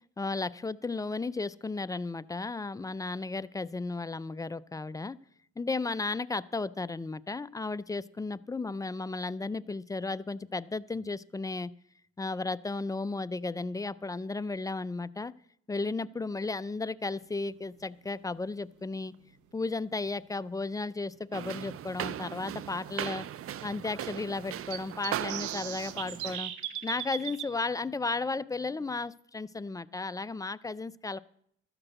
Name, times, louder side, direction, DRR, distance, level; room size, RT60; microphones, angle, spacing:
voice 1, 0.2-5.2 5.6-11.7 12.2-15.3 15.7-19.1 19.5-23.3 23.6-26.5 26.8-31.2, left 3 dB, 10° left, 17 dB, 0.3 m, -34 dB
sound 1, 19.1-19.2 21.2-21.3 21.8-21.9 22.2-22.3 24.7-27.5, right 11 dB, 85° right, 1.0 m, -37 dB
sound 2, 21.3-26.4, right 11 dB, 50° right, 0.5 m, -38 dB
12.5 x 5.9 x 7.8 m, 0.69 s
cardioid pair, 85°, 29 cm